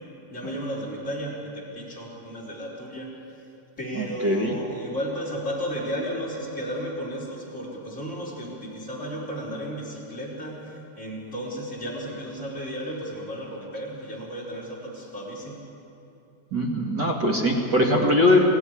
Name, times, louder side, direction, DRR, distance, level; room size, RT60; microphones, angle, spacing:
voice 1, 0.3-3.1 3.8-15.6, equal, 15° left, -3 dB, 4.7 m, -34 dB
voice 2, 3.9-4.6 16.5-18.4, left 1 dB, 75° right, -1 dB, 0.9 m, -21 dB
24.0 x 17.0 x 10.0 m, 2.7 s
omnidirectional pair, 5.4 m